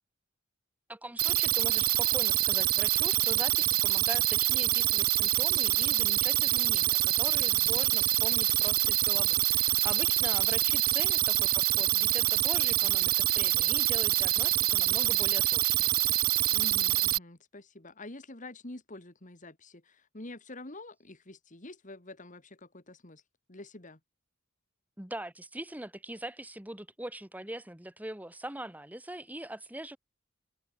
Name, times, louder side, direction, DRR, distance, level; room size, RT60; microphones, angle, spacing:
voice 1, 0.9-16.0 25.0-30.0, right 1 dB, 10° right, 1.5 m, -42 dB
sound 1, 1.2-17.2, right 17 dB, 45° right, 0.4 m, -26 dB
voice 2, 7.5-7.8 16.5-23.2 23.5-24.0, left 2 dB, 40° left, 2.2 m, -47 dB
head